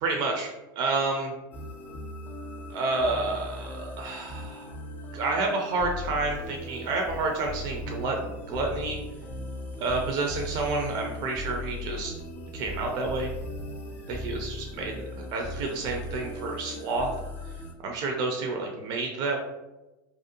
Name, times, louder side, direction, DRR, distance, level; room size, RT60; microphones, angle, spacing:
voice 1, 0.0-1.3 2.7-4.7 5.1-9.0 9.8-12.1 12.5-13.3 14.1-17.1 17.8-19.4, right 3 dB, 40° right, 1 dB, 0.4 m, -29 dB
sound 1, 1.5-17.7, left 1 dB, 20° left, 0.4 m, -38 dB
2.5 x 2.1 x 2.7 m, 1.0 s
supercardioid pair, 130°, 11 cm